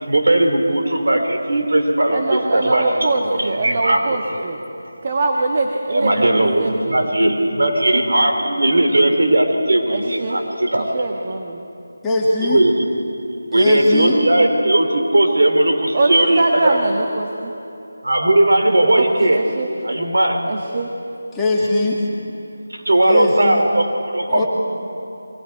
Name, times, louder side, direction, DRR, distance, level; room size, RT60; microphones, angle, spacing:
voice 1, 0.0-4.1 5.9-6.6 6.9-11.0 12.4-12.8 13.5-16.8 18.0-19.4 19.8-20.4 22.7-24.4, right 1 dB, 75° right, 3 dB, 3.2 m, -17 dB
voice 2, 2.1-4.6 5.0-7.1 9.9-10.4 10.7-11.6 15.9-17.5 18.9-19.7 20.5-20.9, right 2 dB, 40° right, 1 dB, 1.4 m, -23 dB
voice 3, 12.0-12.6 13.5-14.2 21.3-22.0 23.1-23.6 24.3-24.4, left 2 dB, 5° left, -6 dB, 1.9 m, -20 dB
29.5 x 23.5 x 4.7 m, 2.8 s
figure-of-eight pair, 170°, 0 cm